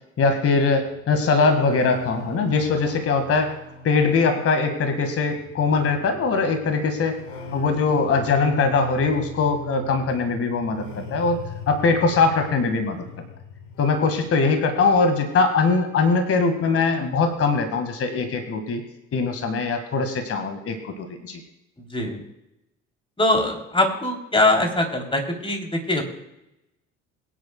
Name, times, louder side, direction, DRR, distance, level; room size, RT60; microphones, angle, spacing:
voice 1, 0.2-3.5 3.8-7.2 7.5-11.4 11.7-13.0 13.8-18.8 19.1-21.4, left 4 dB, 40° left, 6 dB, 1.9 m, -21 dB
sound 1, 0.7-16.5 16.8-17.6, left 1 dB, 75° left, 1.7 m, -40 dB
voice 2, 23.2-26.0, left 2 dB, 15° left, 2 dB, 3.3 m, -22 dB
22.5 x 10.5 x 2.3 m, 0.89 s
figure-of-eight pair, 55°, 37 cm